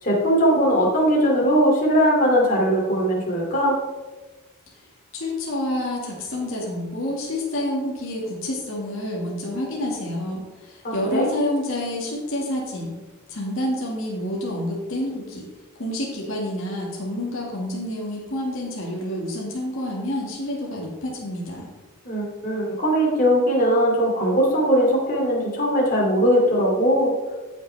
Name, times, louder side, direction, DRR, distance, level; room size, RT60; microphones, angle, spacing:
voice 1, 0.0-3.8 10.8-11.3 22.0-27.1, equal, 40° left, -3 dB, 2.6 m, -20 dB
voice 2, 5.1-12.9 13.3-15.5 15.8-21.7, left 1 dB, 65° left, -3 dB, 1.9 m, -28 dB
14.0 x 6.0 x 3.4 m, 1.2 s
head